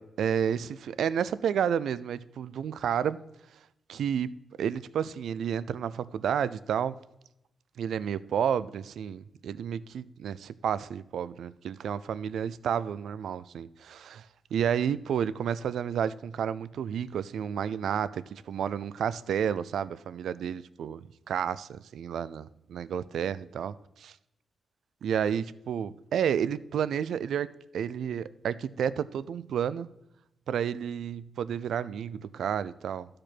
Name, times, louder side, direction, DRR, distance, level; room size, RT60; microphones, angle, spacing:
voice 1, 0.0-3.2 3.9-4.3 4.6-6.9 7.8-14.3 14.5-24.2 25.0-29.9 30.5-33.1, right 8 dB, 80° right, 0.3 m, -31 dB
13.5 x 5.0 x 4.4 m
wide cardioid pair, 175°, 0 cm